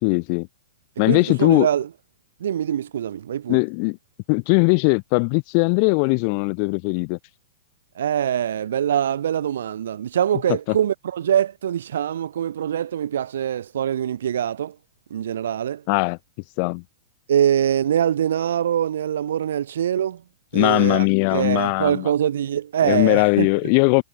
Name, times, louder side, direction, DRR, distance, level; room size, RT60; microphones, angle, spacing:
voice 1, 0.0-0.5 1.0-1.7 3.5-4.0 4.3-7.2 15.9-16.2 16.6-16.8 20.5-22.1 22.8-24.0, left 40 dB or more, 40° left, 1.9 m, -19 dB
voice 2, 1.1-1.9 2.4-3.6 8.0-14.8 15.1-15.8 17.3-20.2 20.5-21.1 21.3-23.5, right 10 dB, 85° right, 0.6 m, -23 dB
hypercardioid pair, 155°, 0 cm